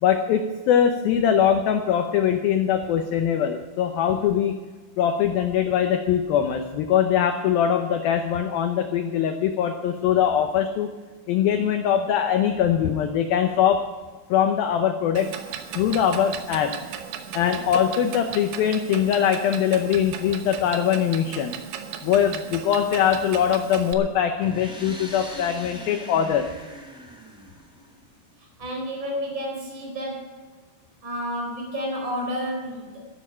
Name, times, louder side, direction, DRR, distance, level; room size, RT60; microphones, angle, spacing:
voice 1, 0.0-4.6 5.0-10.9 11.3-13.8 14.3-15.3 15.7-16.8 17.3-21.6 22.0-26.5, left 9 dB, 80° left, 6 dB, 2.2 m, -22 dB
Clock, 15.2-23.9, right 9 dB, 90° right, 3.5 m, -37 dB
sound 1, 24.4-28.2, equal, ahead, 1.1 m, -41 dB
voice 2, 28.6-30.4 31.0-33.1, equal, 25° right, 0 dB, 4.5 m, -31 dB
14.5 x 11.0 x 5.6 m, 1.3 s
omnidirectional pair, 5.3 m